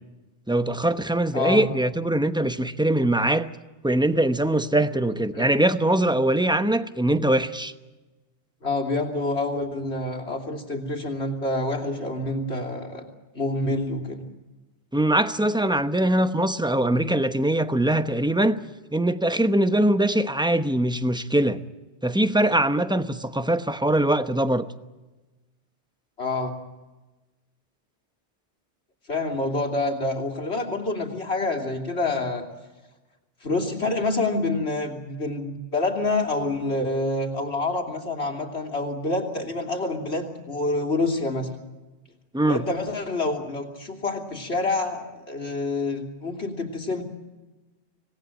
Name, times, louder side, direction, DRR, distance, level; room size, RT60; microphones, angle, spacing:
voice 1, 0.5-3.5 3.8-7.7 14.9-18.6 18.9-21.6 22.0-24.7 42.3-42.6, right 1 dB, 5° right, 0.8 m, -22 dB
voice 2, 1.3-1.7 5.3-5.5 8.6-13.0 13.3-14.2 26.2-26.5 29.1-32.5 33.4-41.5 42.5-47.0, left 2 dB, 70° left, 3.2 m, -27 dB
26.0 x 18.5 x 9.0 m
omnidirectional pair, 1.1 m